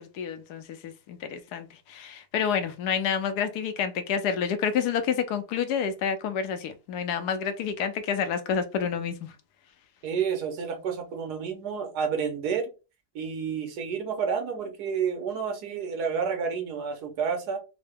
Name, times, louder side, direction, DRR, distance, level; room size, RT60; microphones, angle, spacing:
voice 1, 0.0-9.3, left 7 dB, 80° left, 1.2 m, -29 dB
voice 2, 10.0-12.7 13.1-17.6, right 6 dB, 80° right, 1.4 m, -30 dB
3.8 x 2.1 x 3.4 m
omnidirectional pair, 1.7 m